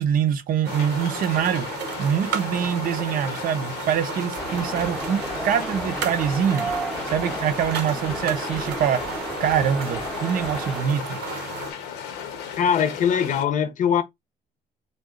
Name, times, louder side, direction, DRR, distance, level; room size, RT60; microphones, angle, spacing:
voice 1, 0.0-1.7 2.0-6.7 7.1-9.0 9.4-11.2, right 8 dB, 55° right, 0.6 m, -24 dB
sound 1, 0.6-11.7, right 6 dB, 85° right, 0.9 m, -34 dB
sound 2, 0.7-13.4, left 7 dB, 90° left, 0.8 m, -36 dB
sound 3, 4.4-10.8, right 1 dB, ahead, 0.7 m, -34 dB
voice 2, 12.6-14.0, left 8 dB, 50° left, 0.7 m, -21 dB
3.7 x 2.3 x 3.6 m
cardioid pair, 110°, 17 cm